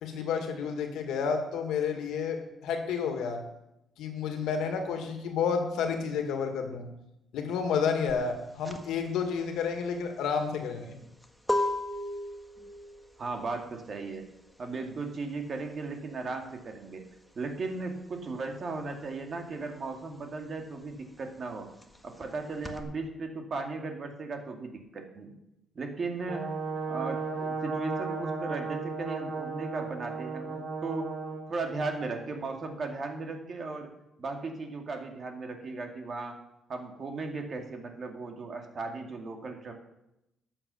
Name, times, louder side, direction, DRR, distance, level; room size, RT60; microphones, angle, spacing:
voice 1, 0.0-3.4 4.0-6.8 7.3-11.0, left 6 dB, 85° left, 5 dB, 1.9 m, -30 dB
sound 1, 8.1-18.3 18.6-22.8, left 1 dB, ahead, 1.5 m, -36 dB
voice 2, 13.2-14.2 14.6-17.0 17.4-21.7 22.0-25.3 25.7-26.5 26.9-31.1 31.5-33.9 34.2-36.4 36.7-39.7, right 3 dB, 45° right, 3 dB, 2.3 m, -36 dB
Brass instrument, 26.3-31.5, right 4 dB, 75° right, 3.1 m, -35 dB
11.5 x 7.2 x 7.0 m, 0.87 s
cardioid pair, 90°, 0 cm